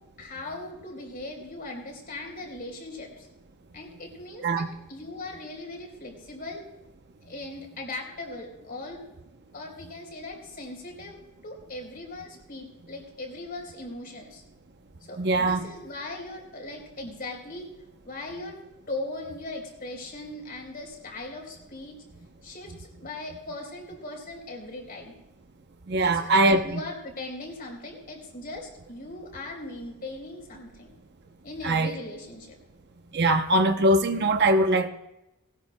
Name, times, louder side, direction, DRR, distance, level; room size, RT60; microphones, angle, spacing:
voice 1, 0.2-3.3 3.7-6.6 7.2-9.1 9.5-14.4 15.0-17.7 18.0-18.6 18.9-21.9 22.4-25.1 26.0-30.9 31.4-32.6, left 2 dB, 40° left, 1 dB, 3.8 m, -39 dB
voice 2, 15.2-15.7 25.9-26.8 31.6-32.0 33.1-34.9, right 1 dB, 50° right, 7 dB, 0.7 m, -22 dB
19.5 x 18.0 x 2.2 m, 0.90 s
head